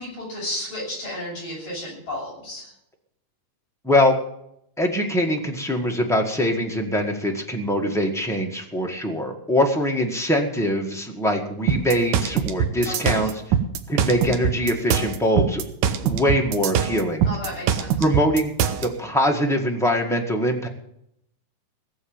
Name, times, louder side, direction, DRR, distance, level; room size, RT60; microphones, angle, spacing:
voice 1, 0.0-2.7 12.9-13.3 17.2-18.1, left 1 dB, 50° left, -3 dB, 8.2 m, -33 dB
voice 2, 3.8-4.2 4.8-13.3 13.9-17.3 18.0-18.5 18.8-20.7, equal, 5° left, 1 dB, 0.5 m, -23 dB
sound 1, 11.7-18.9, right 8 dB, 90° right, 2.6 m, -23 dB
18.0 x 7.3 x 8.9 m, 0.76 s
omnidirectional pair, 3.7 m